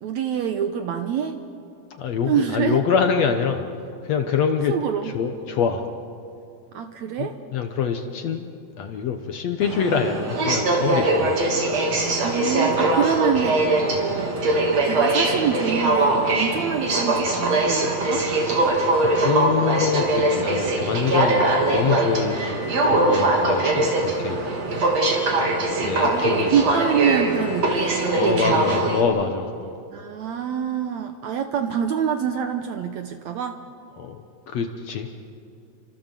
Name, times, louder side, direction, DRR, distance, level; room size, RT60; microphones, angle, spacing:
voice 1, 0.0-1.4 2.3-2.8 4.7-5.2 6.7-7.4 12.2-14.5 14.8-18.3 25.8-28.8 29.9-33.6, right 8 dB, 70° right, 7 dB, 1.8 m, -26 dB
voice 2, 2.0-3.6 4.1-4.7 5.0-5.9 7.2-12.0 19.0-22.4 22.8-24.5 25.8-26.7 28.2-29.8 34.0-34.2 34.5-35.1, left 6 dB, 60° left, 6 dB, 1.9 m, -25 dB
Aircraft, 9.6-29.0, right 2 dB, 50° right, 4.1 m, -22 dB
30.0 x 25.0 x 7.5 m, 2.5 s
omnidirectional pair, 4.1 m